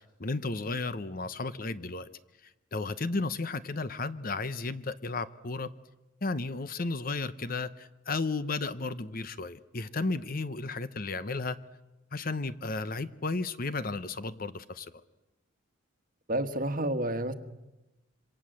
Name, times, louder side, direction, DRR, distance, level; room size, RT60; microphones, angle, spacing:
voice 1, 0.2-2.1 2.7-5.7 6.2-11.6 12.1-14.9, left 3 dB, 45° left, 0.9 m, -33 dB
voice 2, 16.3-17.3, right 1 dB, 40° right, 1.4 m, -29 dB
27.0 x 24.5 x 7.7 m
head